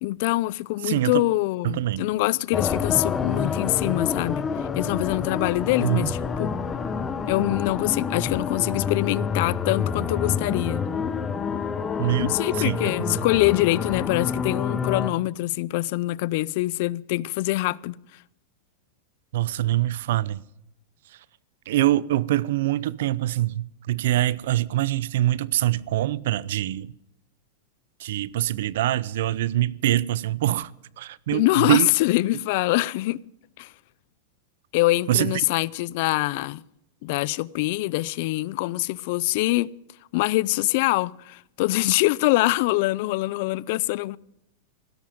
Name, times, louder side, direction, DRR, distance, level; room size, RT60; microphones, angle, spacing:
voice 1, 0.0-6.6 7.3-10.8 12.2-18.0 31.3-33.2 33.6-33.7 34.7-36.6 37.0-39.7 40.1-44.2, left 19 dB, 50° left, 0.5 m, -24 dB
voice 2, 0.8-1.2 1.6-2.1 5.8-6.1 12.0-12.8 13.1-13.2 19.3-20.4 21.7-26.9 28.0-30.7 31.0-31.9 35.1-35.4, right 14 dB, 70° right, 0.6 m, -24 dB
sound 1, 2.5-15.1, left 6 dB, 15° left, 0.8 m, -28 dB
16.0 x 12.5 x 5.1 m
supercardioid pair, 160°, 0 cm